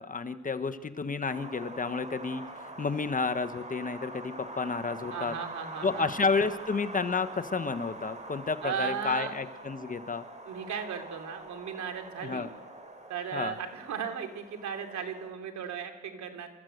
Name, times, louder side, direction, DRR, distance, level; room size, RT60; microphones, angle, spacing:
voice 1, 0.0-5.3 5.8-10.2 12.2-12.5 13.3-13.5, left 4 dB, 25° left, 10 dB, 1.0 m, -31 dB
Wind, 1.2-15.3, right 2 dB, 25° right, 5.3 m, -45 dB
voice 2, 5.1-6.1 8.6-9.3 10.5-12.5 13.1-16.5, right 7 dB, 70° right, 5 dB, 2.9 m, -36 dB
28.0 x 13.5 x 7.9 m, 1.3 s
cardioid pair, 90°, 30 cm